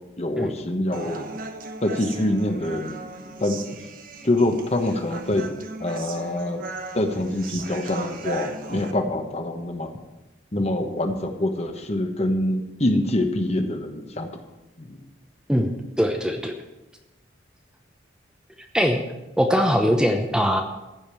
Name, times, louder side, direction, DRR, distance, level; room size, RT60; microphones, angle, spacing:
voice 1, 0.2-1.3 1.8-3.0 3.4-3.6 4.2-5.5 5.8-6.7 6.9-9.9 10.5-14.3 14.8-15.0, left 1 dB, 35° left, 5 dB, 1.2 m, -25 dB
Human voice, 0.9-8.9, right 3 dB, 45° right, 1.1 m, -37 dB
voice 2, 16.0-16.5 18.7-19.0 19.4-20.6, equal, 5° right, 3 dB, 0.9 m, -21 dB
15.0 x 5.3 x 9.0 m, 1.0 s
head